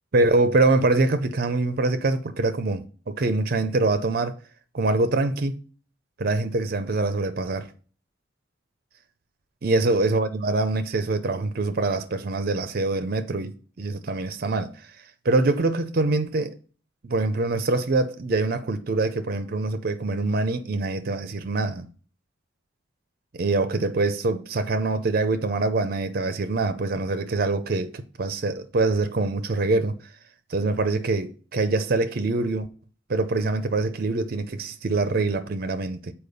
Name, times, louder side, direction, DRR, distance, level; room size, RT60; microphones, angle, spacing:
voice 1, 0.1-4.4 4.7-5.5 6.2-7.7 9.6-14.9 15.2-16.5 17.0-21.9 23.3-30.0 30.5-32.7 33.1-36.1, right 3 dB, 50° right, 0.5 m, -24 dB
6.8 x 4.4 x 5.3 m
head